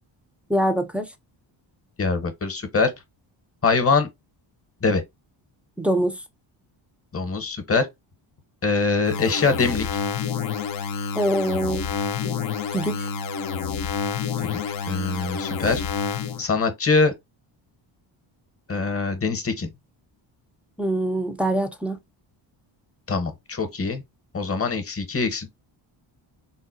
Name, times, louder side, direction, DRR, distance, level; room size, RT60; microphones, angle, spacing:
voice 1, 0.5-1.1 5.8-6.2 11.1-11.9 12.2-12.4 12.7-13.1 20.8-22.0, right 1 dB, 5° right, 0.5 m, -24 dB
voice 2, 2.0-2.9 3.6-4.1 4.8-5.0 7.1-7.9 8.6-9.9 14.4-14.6 14.9-15.8 16.4-17.1 18.7-19.7 23.1-24.0 24.3-25.5, left 4 dB, 30° left, 0.9 m, -23 dB
sound 1, 9.0-16.4, left 6 dB, 45° left, 0.5 m, -28 dB
3.9 x 2.1 x 2.5 m
cardioid pair, 70°, 50 cm